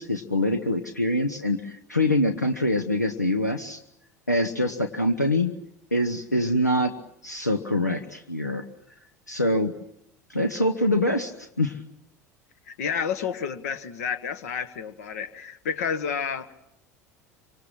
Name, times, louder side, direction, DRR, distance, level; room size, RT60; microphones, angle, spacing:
voice 1, 0.0-3.8 4.3-5.5 5.9-6.9 7.2-8.6 9.3-9.7 10.3-11.3 11.6-11.8, left 1 dB, 90° left, 6 dB, 1.0 m, -24 dB
voice 2, 12.7-16.5, left 6 dB, 65° left, 13 dB, 1.5 m, -30 dB
26.5 x 25.0 x 7.6 m, 0.78 s
figure-of-eight pair, 70°, 9 cm